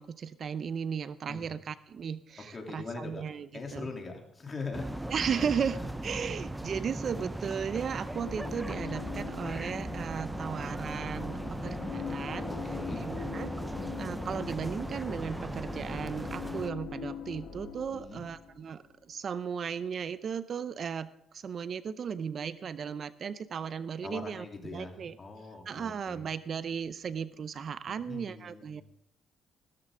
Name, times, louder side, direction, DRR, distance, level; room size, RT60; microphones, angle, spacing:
voice 1, 0.0-3.9 5.1-5.8 6.0-12.4 13.0-13.5 14.0-25.2 25.7-28.8, right 7 dB, 55° right, 15 dB, 0.5 m, -36 dB
voice 2, 2.4-3.2 3.5-5.5 5.8-6.3 6.6-6.7 11.3-11.9 12.5-13.0 17.9-18.2 24.0-26.2 27.9-28.8, left 3 dB, 30° left, 2 dB, 3.1 m, -42 dB
sound 1, 4.7-16.7, right 1 dB, 10° right, 0.6 m, -38 dB
sound 2, 8.1-18.9, left 6 dB, 80° left, 1.5 m, -42 dB
15.0 x 13.5 x 3.7 m, 0.77 s
cardioid pair, 90°, 0 cm